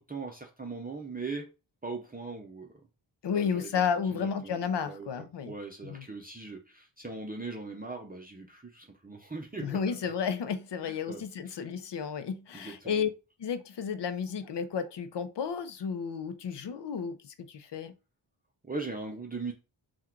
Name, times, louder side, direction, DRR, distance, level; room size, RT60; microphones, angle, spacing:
voice 1, 0.0-1.5 1.8-2.8 3.3-3.9 4.1-10.0 10.8-11.6 12.5-13.1 18.6-19.5, right 3 dB, 20° right, 0.7 m, -40 dB
voice 2, 3.2-5.5 5.9-6.0 9.6-13.1 13.4-17.9, left 7 dB, 60° left, 0.7 m, -32 dB
3.6 x 2.5 x 4.4 m
wide cardioid pair, 90°, 47 cm